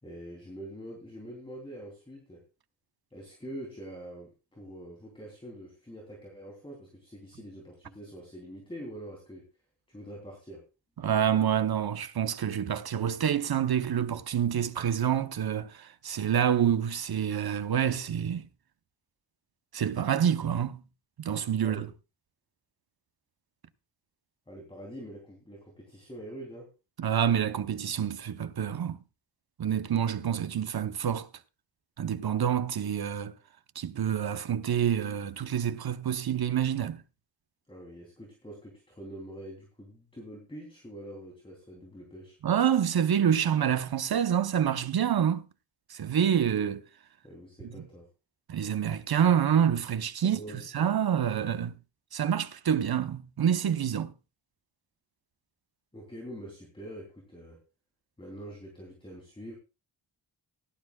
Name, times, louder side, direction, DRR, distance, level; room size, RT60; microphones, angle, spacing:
voice 1, 0.0-2.4 3.1-9.5 9.9-10.6 21.6-21.9 24.5-26.7 37.7-42.4 47.2-48.1 50.2-50.6 55.9-57.6 58.2-59.5, right 1 dB, 10° left, 3.3 m, -45 dB
voice 2, 11.0-18.5 19.7-20.8 21.2-21.9 27.0-29.0 29.6-31.3 32.0-33.3 33.7-37.0 42.4-45.5 45.9-46.8 47.8-47.9 48.5-50.4 50.7-51.8 52.1-54.1, right 9 dB, 55° right, 0.9 m, -27 dB
16.5 x 12.0 x 2.4 m
wide cardioid pair, 170°, 43 cm